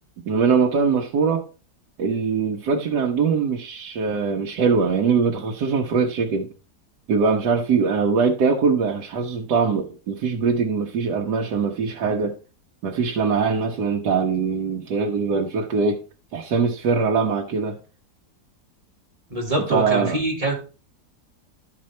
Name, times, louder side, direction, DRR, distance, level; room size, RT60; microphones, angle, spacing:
voice 1, 0.3-1.5 2.0-6.5 7.1-12.4 12.8-16.0 16.3-17.8 19.7-20.2, right 5 dB, 80° right, 1.5 m, -22 dB
voice 2, 19.3-20.5, right 1 dB, 20° right, 2.3 m, -24 dB
11.5 x 4.7 x 4.2 m
omnidirectional pair, 1.7 m